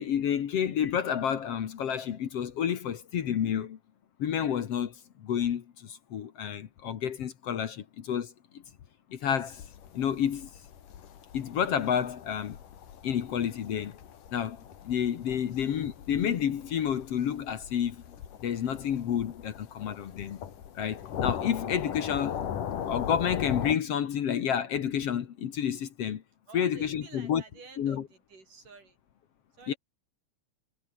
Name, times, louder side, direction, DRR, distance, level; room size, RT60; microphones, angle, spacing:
voice 1, 0.0-3.8 4.2-8.6 9.1-9.6 9.9-10.5 11.3-12.6 13.0-14.0 14.3-18.0 18.4-20.4 20.7-22.3 22.9-26.2 26.5-27.4 27.8-28.0 29.7-29.8, left 9 dB, 55° left, 2.1 m, -30 dB
sound 1, 9.5-23.8, left 9 dB, 85° left, 3.8 m, -39 dB
voice 2, 26.5-29.0 29.6-29.8, right 4 dB, 85° right, 7.7 m, -51 dB
omnidirectional pair, 3.6 m